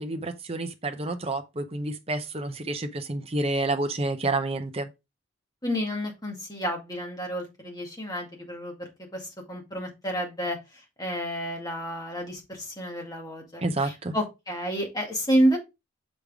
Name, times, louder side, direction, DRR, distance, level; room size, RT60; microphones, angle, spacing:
voice 1, 0.0-4.9 13.6-14.2, right 2 dB, 30° right, 0.7 m, -29 dB
voice 2, 5.6-8.7 9.1-10.6 11.0-15.6, equal, 20° left, 1.9 m, -29 dB
6.5 x 5.2 x 3.5 m
head